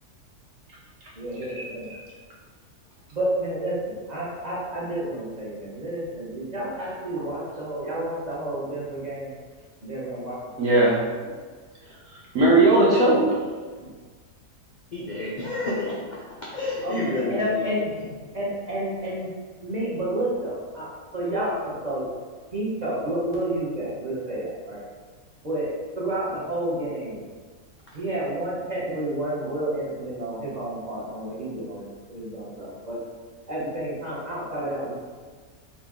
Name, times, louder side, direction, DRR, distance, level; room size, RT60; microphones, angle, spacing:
voice 1, 1.2-1.9 3.1-9.3 9.8-10.8 13.8-13.9 16.8-17.9 18.3-19.3 19.6-22.1 22.5-24.8 25.4-25.7 25.9-27.2 27.9-33.0 33.5-34.9, right 1 dB, 30° right, -7 dB, 1.2 m, -30 dB
voice 2, 10.6-11.0 11.9-13.3, right 2 dB, 60° right, -4 dB, 1.1 m, -19 dB
voice 3, 14.9-16.2 16.5-17.7, left 2 dB, 60° left, -6 dB, 0.5 m, -29 dB
4.0 x 2.9 x 3.6 m, 1.5 s
omnidirectional pair, 1.7 m